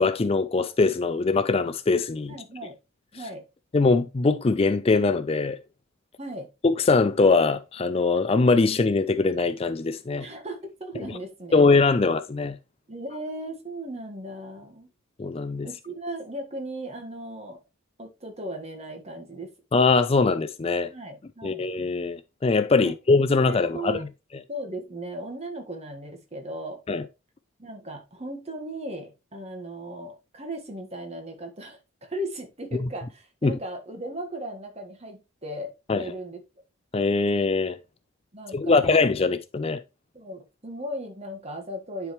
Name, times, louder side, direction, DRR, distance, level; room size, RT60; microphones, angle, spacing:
voice 1, 0.0-2.3 3.7-5.6 6.6-10.3 11.0-11.1 11.5-12.6 15.2-15.7 19.7-20.9 21.4-24.1 26.9-27.0 32.8-32.9 33.4-33.6 35.9-36.0 36.9-37.8 38.5-39.8, left 3 dB, 30° left, 0.4 m, -22 dB
voice 2, 2.3-2.8 3.1-3.4 6.2-6.5 10.2-11.7 12.9-14.9 15.6-17.6 18.0-19.5 20.9-21.7 22.7-22.9 23.4-24.1 24.5-26.8 27.6-36.4 38.3-39.0 40.1-42.1, right 1 dB, 30° right, 1.5 m, -37 dB
10.5 x 4.8 x 3.1 m
head